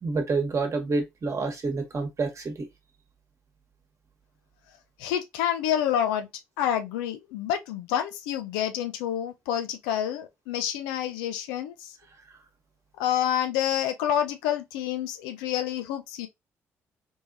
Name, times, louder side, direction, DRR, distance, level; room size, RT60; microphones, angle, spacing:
voice 1, 0.0-2.7, right 3 dB, 40° right, 1.4 m, -28 dB
voice 2, 5.0-6.3 6.6-12.0 13.0-16.3, left 10 dB, 70° left, 0.6 m, -28 dB
3.5 x 3.4 x 2.6 m
figure-of-eight pair, 45°, 8 cm